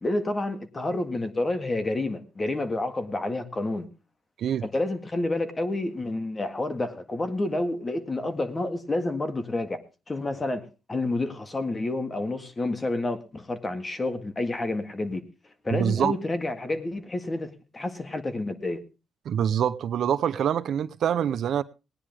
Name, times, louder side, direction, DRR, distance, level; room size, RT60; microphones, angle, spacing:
voice 1, 0.0-3.9 4.6-9.8 10.1-15.2 15.6-18.8, left 2 dB, 25° left, 9 dB, 1.8 m, -29 dB
voice 2, 15.7-16.1 19.3-21.6, right 9 dB, 65° right, 13 dB, 0.7 m, -25 dB
19.0 x 10.0 x 3.5 m, 0.30 s
cardioid pair, 90°, 0 cm